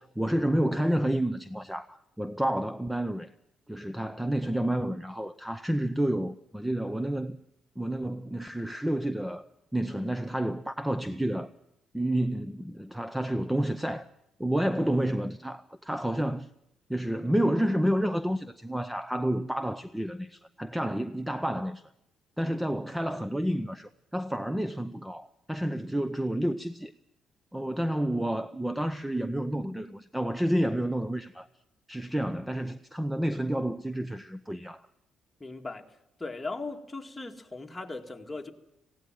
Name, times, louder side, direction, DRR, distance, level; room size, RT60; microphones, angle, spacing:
voice 1, 0.0-3.3 3.7-7.4 7.8-11.5 11.9-14.1 14.4-16.5 16.9-21.8 22.4-26.9 27.5-31.5 31.9-34.9, right 1 dB, 5° right, 0.7 m, -30 dB
voice 2, 35.4-35.9 36.2-38.5, left 3 dB, 15° left, 2.1 m, -38 dB
18.5 x 16.5 x 9.0 m
cardioid pair, 90°, 0 cm